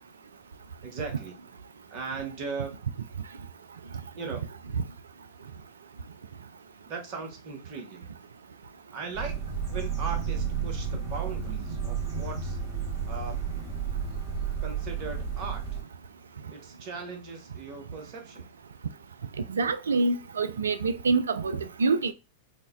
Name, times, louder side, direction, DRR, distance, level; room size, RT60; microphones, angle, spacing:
voice 1, 0.8-1.3 1.9-2.8 4.2-4.4 6.8-8.1 8.9-9.3 9.7-12.6 13.1-13.4 14.6-15.6 16.5-18.5, right 4 dB, 40° right, 0.9 m, -38 dB
sound 1, 9.1-15.8, right 6 dB, 10° right, 1.7 m, -32 dB
voice 2, 19.5-22.1, right 3 dB, 70° right, 0.3 m, -26 dB
5.1 x 2.2 x 2.3 m
figure-of-eight pair, 90°, 0 cm